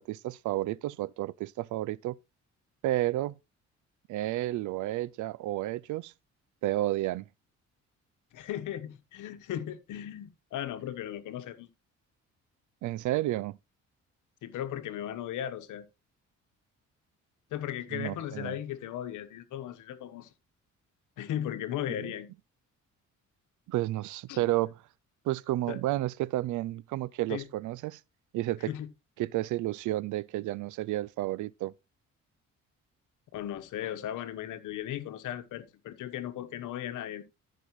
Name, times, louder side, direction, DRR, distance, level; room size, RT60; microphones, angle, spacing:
voice 1, 0.0-2.2 2.8-3.4 4.1-6.1 6.6-7.3 12.8-13.6 17.9-18.6 23.7-24.7 25.3-28.0 28.3-28.7 29.2-31.7, right 16 dB, 75° right, 0.5 m, -31 dB
voice 2, 8.3-11.7 14.4-15.9 17.5-20.3 21.2-22.3 24.3-24.5 25.7-25.8 27.3-27.5 28.7-28.9 33.3-37.2, left 11 dB, 85° left, 1.2 m, -37 dB
13.5 x 5.6 x 3.1 m
cardioid pair, 90°, 30 cm